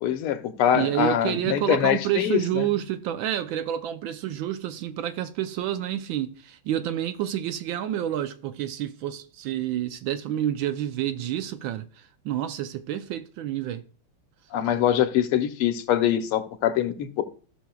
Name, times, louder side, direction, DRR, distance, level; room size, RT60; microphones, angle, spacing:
voice 1, 0.0-2.7 14.5-17.2, left 10 dB, 80° left, 1.8 m, -24 dB
voice 2, 0.7-13.8, right 11 dB, 75° right, 1.2 m, -29 dB
15.0 x 6.3 x 2.3 m
omnidirectional pair, 2.4 m